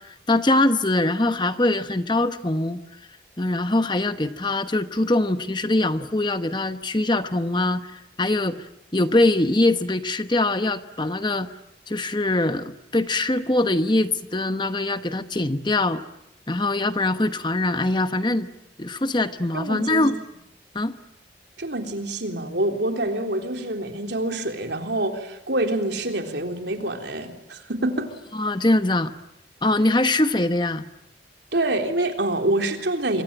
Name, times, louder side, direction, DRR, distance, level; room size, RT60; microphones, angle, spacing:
voice 1, 0.0-2.8 3.4-8.6 8.9-11.5 11.9-16.0 16.5-18.5 18.8-20.1 20.7-20.9 28.3-29.1 29.6-30.8, left 2 dB, 25° left, 10 dB, 1.0 m, -22 dB
voice 2, 19.5-20.1 21.6-28.1 31.5-33.2, right 1 dB, 75° right, 4 dB, 3.6 m, -26 dB
26.5 x 24.0 x 9.0 m, 0.81 s
head